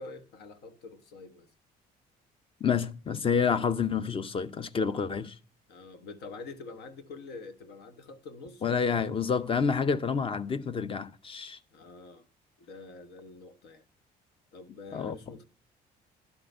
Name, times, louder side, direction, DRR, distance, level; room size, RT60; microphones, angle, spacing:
voice 1, 0.0-1.5 5.7-9.1 11.7-12.3 12.6-13.8 14.5-15.4, left 3 dB, 80° left, 1.3 m, -46 dB
voice 2, 2.6-5.4 8.6-11.6 14.9-15.2, left 6 dB, 30° left, 0.7 m, -28 dB
11.5 x 3.9 x 7.7 m
cardioid pair, 110°, 17 cm